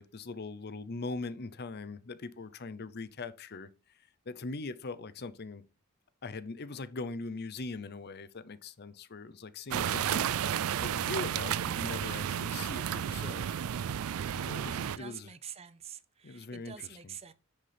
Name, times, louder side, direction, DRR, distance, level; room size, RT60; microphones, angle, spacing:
voice 1, 0.0-5.6 6.2-13.6 14.3-15.3 16.2-17.1, left 3 dB, 50° left, 0.7 m, -41 dB
sound 1, 9.7-15.0, right 9 dB, 90° right, 0.4 m, -32 dB
voice 2, 14.8-17.3, right 8 dB, 30° right, 0.5 m, -46 dB
9.7 x 6.5 x 3.4 m
head